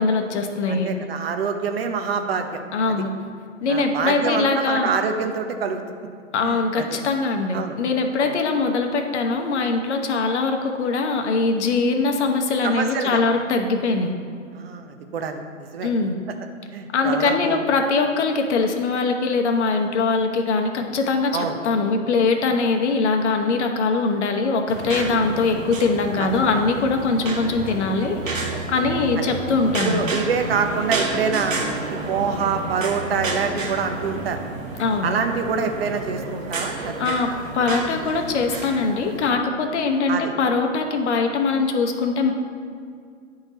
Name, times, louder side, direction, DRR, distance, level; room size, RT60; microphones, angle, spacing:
voice 1, 0.0-0.9 2.7-3.1 3.6-4.9 6.3-14.1 15.8-16.1 16.9-30.1 34.8-35.1 37.0-42.3, left 4 dB, 60° left, 4 dB, 0.9 m, -22 dB
voice 2, 0.7-2.6 2.9-3.0 3.7-5.8 6.4-7.0 7.5-7.8 8.2-8.4 12.6-13.2 14.5-15.9 16.7-17.6 21.3-21.6 26.2-26.3 29.2-29.3 29.8-31.6 32.1-34.4 35.0-37.1 40.1-40.3, right 6 dB, 50° right, 6 dB, 0.7 m, -26 dB
sound 1, 24.7-39.3, right 3 dB, 85° right, 1.2 m, -30 dB
9.7 x 3.9 x 4.1 m, 2.2 s
hypercardioid pair, 130°, 39 cm